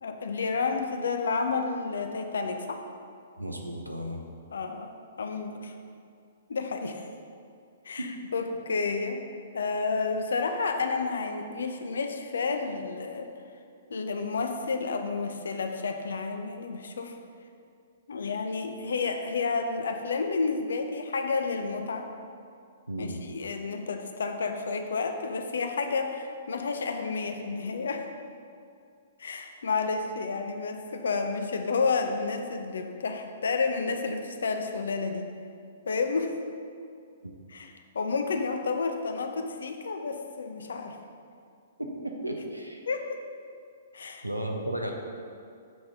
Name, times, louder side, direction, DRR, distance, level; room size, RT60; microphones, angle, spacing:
voice 1, 0.0-2.8 4.5-5.7 6.5-7.1 7.8-8.1 8.3-9.2 9.5-13.3 13.9-17.1 18.1-22.1 23.0-28.1 29.2-35.3 35.9-36.4 37.5-41.0 42.9-43.2 43.9-44.2, left 4 dB, 65° left, 6 dB, 0.6 m, -30 dB
voice 2, 3.4-4.2 8.0-8.3 22.9-23.2 37.2-37.3 41.8-42.8 44.0-44.9, right 1 dB, 90° right, 2 dB, 0.9 m, -35 dB
7.6 x 4.3 x 5.1 m, 2.4 s
figure-of-eight pair, 115°, 0 cm